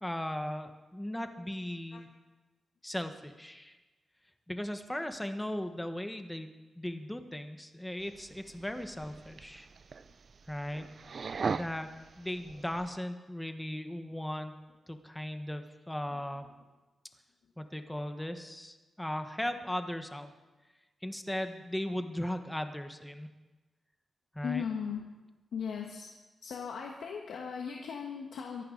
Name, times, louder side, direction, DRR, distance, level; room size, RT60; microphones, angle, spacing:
voice 1, 0.0-2.1 2.8-3.8 4.5-6.5 6.8-9.7 10.5-10.9 11.5-11.9 12.2-14.5 14.9-16.5 17.6-20.3 21.0-23.3 24.3-24.6, left 1 dB, 5° left, 7 dB, 1.1 m, -37 dB
sound 1, 8.0-13.0, right 5 dB, 50° right, 0.4 m, -40 dB
voice 2, 24.4-25.0 25.5-26.1 26.4-28.6, left 7 dB, 90° left, 1 dB, 1.3 m, -37 dB
24.0 x 11.0 x 3.9 m, 1.2 s
wide cardioid pair, 110°, 0 cm